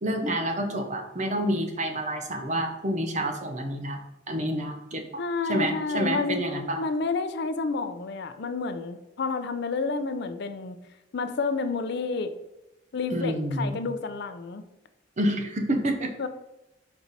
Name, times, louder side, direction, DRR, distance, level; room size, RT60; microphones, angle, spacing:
voice 1, 0.0-4.0 4.3-5.2 5.5-6.8 13.1-13.8 15.2-16.3, right 1 dB, 40° right, 4 dB, 0.9 m, -28 dB
voice 2, 5.2-6.4 6.8-10.8 11.1-12.3 12.9-14.6 16.2-16.3, left 4 dB, 60° left, 10 dB, 0.5 m, -30 dB
5.3 x 4.6 x 4.1 m, 0.95 s
head